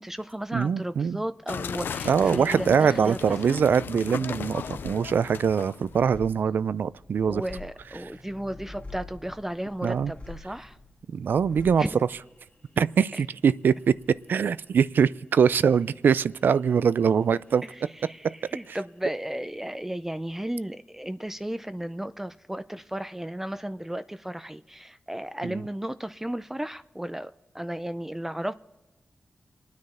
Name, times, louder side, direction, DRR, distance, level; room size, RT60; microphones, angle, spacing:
voice 1, 0.0-3.6 7.3-10.8 11.8-12.0 13.1-13.2 17.6-28.5, right 1 dB, 10° right, 0.4 m, -34 dB
voice 2, 0.5-1.2 2.1-7.4 9.8-10.1 11.1-11.9 12.8-13.7 14.3-17.6 18.7-18.8 25.4-25.6, right 7 dB, 75° right, 0.4 m, -23 dB
sound 1, 1.5-6.0, left 7 dB, 85° left, 0.4 m, -36 dB
sound 2, 4.5-19.4 19.6-20.4, left 2 dB, 45° left, 2.5 m, -49 dB
27.5 x 9.6 x 4.2 m
wide cardioid pair, 90°, 3 cm